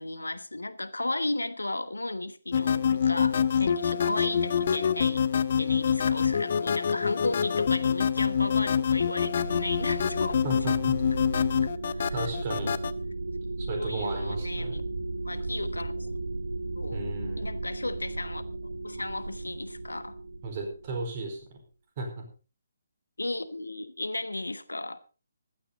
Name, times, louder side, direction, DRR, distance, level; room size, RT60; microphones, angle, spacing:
voice 1, 0.0-10.4 11.3-12.7 13.8-14.8 15.2-16.1 16.7-20.2 23.2-25.0, left 2 dB, 80° left, 14 dB, 1.1 m, -35 dB
sound 1, 2.5-12.9, left 7 dB, 45° left, 0.8 m, -26 dB
sound 2, 9.2-21.5, right 2 dB, 75° right, 2.0 m, -35 dB
voice 2, 10.4-11.0 12.1-12.8 13.6-14.8 16.9-17.6 20.4-21.6 22.0-22.3, right 2 dB, 35° right, 3 dB, 4.6 m, -35 dB
15.5 x 12.0 x 4.0 m, 0.34 s
figure-of-eight pair, 140°, 0 cm